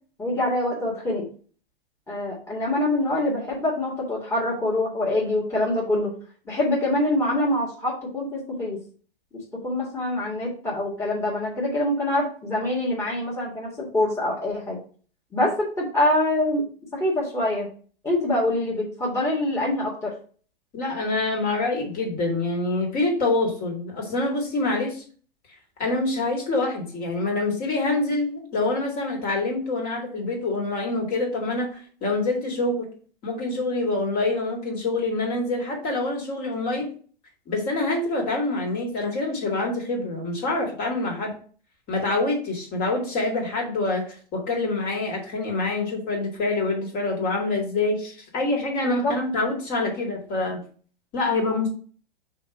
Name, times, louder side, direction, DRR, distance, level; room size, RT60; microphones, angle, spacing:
voice 1, 0.2-1.2 2.1-6.1 6.5-8.8 9.6-14.8 15.3-16.6 17.0-17.7 18.0-20.1 49.0-49.1, left 1 dB, 10° left, -6 dB, 1.8 m, -25 dB
voice 2, 20.7-25.0 25.8-32.9 33.2-36.9 37.5-41.4 41.9-50.6 51.1-51.7, left 2 dB, 30° left, 0 dB, 2.2 m, -26 dB
5.7 x 3.7 x 4.7 m, 0.42 s
figure-of-eight pair, 105°, 29 cm